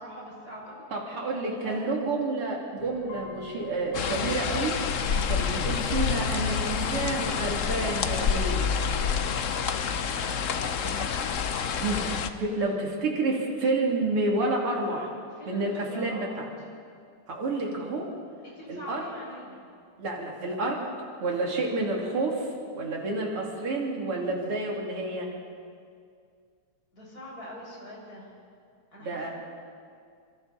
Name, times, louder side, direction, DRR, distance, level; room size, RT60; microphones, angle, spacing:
voice 1, 0.0-2.0 10.7-11.1 12.5-12.7 15.3-16.4 18.4-19.6 26.9-28.3 28.9-29.3, equal, 40° left, -4 dB, 7.2 m, -44 dB
voice 2, 0.9-4.8 5.3-8.7 11.8-12.0 12.4-15.1 15.5-16.5 17.3-18.1 18.7-19.1 20.0-20.9 21.2-22.5 22.7-25.3 29.0-29.3, right 2 dB, 80° right, -1 dB, 4.0 m, -29 dB
sound 1, 2.8-7.8, left 2 dB, 75° left, 6.4 m, -48 dB
sound 2, 3.9-12.3, left 6 dB, 55° left, 0.8 m, -28 dB
28.0 x 26.0 x 4.3 m, 2.2 s
omnidirectional pair, 2.4 m